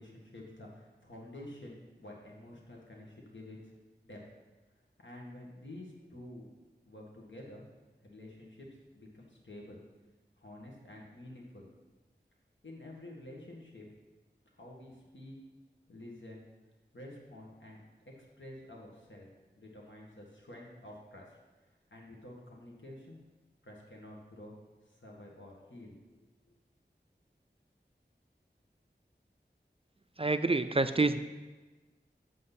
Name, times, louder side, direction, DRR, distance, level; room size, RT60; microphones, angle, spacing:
voice 1, 0.0-3.6 4.0-4.2 5.0-6.5 6.9-7.6 8.0-9.8 10.4-11.7 12.6-13.9 14.5-15.4 15.9-16.4 16.9-17.8 18.1-19.3 19.6-21.3 21.6-23.2 23.6-24.5 24.8-26.2 26.5-26.6, left 1 dB, 80° left, -2 dB, 1.8 m, -49 dB
voice 2, 30.2-31.2, right 3 dB, 30° right, 10 dB, 0.4 m, -27 dB
7.6 x 7.5 x 4.1 m, 1.2 s
wide cardioid pair, 50°, 19 cm